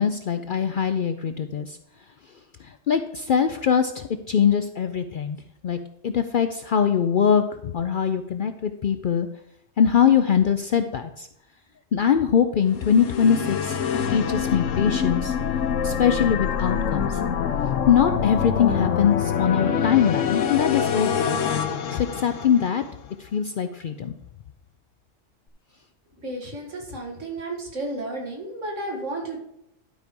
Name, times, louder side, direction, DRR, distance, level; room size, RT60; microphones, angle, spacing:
voice 1, 0.0-1.8 2.9-5.4 5.6-5.8 6.0-9.3 9.8-11.3 11.9-13.8 14.1-15.3 15.8-17.2 17.9-21.4 21.9-22.8 23.2-24.1, left 8 dB, 60° left, 8 dB, 0.5 m, -22 dB
sound 1, 12.7-22.9, left 7 dB, 85° left, 1.2 m, -25 dB
voice 2, 26.2-29.4, right 2 dB, 75° right, 1 dB, 2.2 m, -32 dB
11.5 x 4.7 x 5.2 m, 0.82 s
omnidirectional pair, 1.3 m